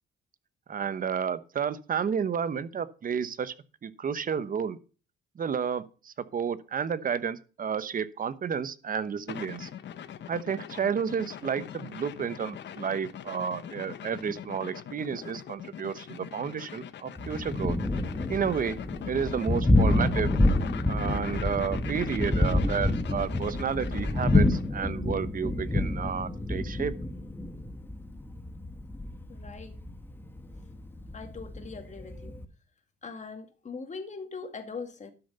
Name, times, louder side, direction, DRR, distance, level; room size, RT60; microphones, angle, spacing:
voice 1, 0.7-3.5 3.8-4.8 5.3-9.7 10.3-17.8 18.3-18.8 19.1-20.3 20.9-26.9, right 7 dB, 45° right, 1.0 m, -31 dB
sound 1, 9.3-24.7, left 9 dB, 65° left, 1.1 m, -41 dB
Thunder, 17.2-32.5, left 2 dB, 10° left, 1.4 m, -28 dB
voice 2, 29.3-29.8 31.1-32.4 33.0-35.1, left 4 dB, 35° left, 2.3 m, -41 dB
12.5 x 6.8 x 5.5 m
cardioid pair, 90°, 20 cm